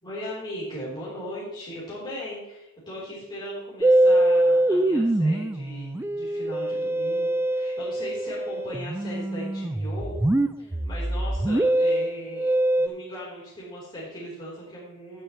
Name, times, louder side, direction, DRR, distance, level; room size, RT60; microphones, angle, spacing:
voice 1, 0.0-10.2 10.6-12.5 12.8-15.2, equal, 20° left, -7 dB, 3.9 m, -38 dB
Musical instrument, 3.8-12.9, right 1 dB, 10° right, 0.3 m, -23 dB
18.0 x 6.6 x 3.2 m, 0.87 s
head